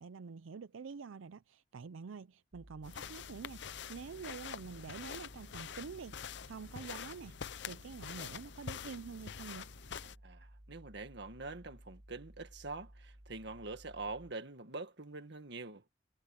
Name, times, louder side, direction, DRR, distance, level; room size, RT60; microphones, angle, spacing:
voice 1, 0.0-6.2 6.4-7.3 7.6-9.7, right 5 dB, 85° right, 0.5 m, -47 dB
sound 1, 2.5-14.3, right 1 dB, 30° right, 1.2 m, -57 dB
sound 2, 2.8-10.1, left 7 dB, 60° left, 0.6 m, -46 dB
voice 2, 10.2-15.8, right 3 dB, 60° right, 1.9 m, -45 dB
head